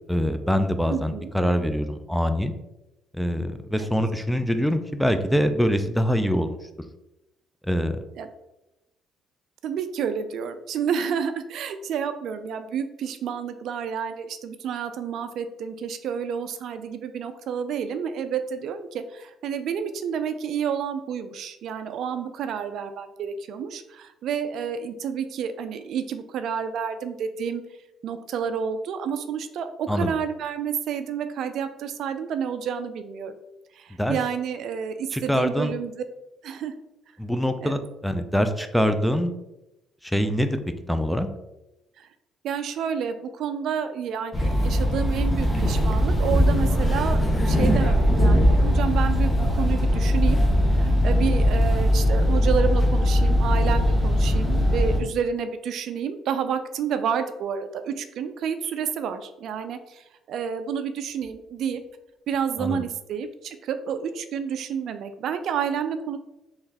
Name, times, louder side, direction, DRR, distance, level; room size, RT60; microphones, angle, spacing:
voice 1, 0.1-2.5 3.1-6.6 7.6-8.0 29.9-30.2 34.0-34.2 35.1-35.7 37.2-39.3 40.0-40.6 40.9-41.3 62.6-62.8, equal, ahead, 9 dB, 0.4 m, -24 dB
voice 2, 0.9-1.3 3.8-3.9 8.2-8.3 9.6-27.6 28.0-33.3 33.7-35.9 36.4-36.8 37.6-37.7 42.0-42.1 42.4-50.4 50.7-61.8 62.3-66.2, right 7 dB, 70° right, 10 dB, 0.3 m, -30 dB
sound 1, 44.3-55.0, equal, 20° left, 0.8 m, -20 dB
3.8 x 3.1 x 2.8 m, 0.92 s
supercardioid pair, 80°, 0 cm